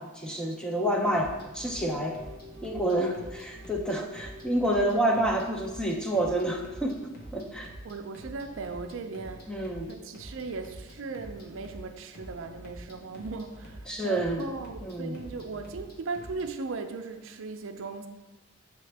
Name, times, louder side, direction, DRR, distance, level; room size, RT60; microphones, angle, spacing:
voice 1, 0.0-2.2 2.6-7.0 7.3-7.7 9.5-9.9 13.9-14.4 14.8-15.2, right 1 dB, 5° left, 0 dB, 0.5 m, -28 dB
sound 1, 1.0-16.5, equal, 45° left, 0.9 m, -47 dB
sound 2, 1.5-8.9, equal, 70° left, 1.8 m, -52 dB
voice 2, 7.8-18.1, right 4 dB, 65° right, 7 dB, 0.4 m, -38 dB
7.6 x 3.7 x 3.3 m, 1.1 s
head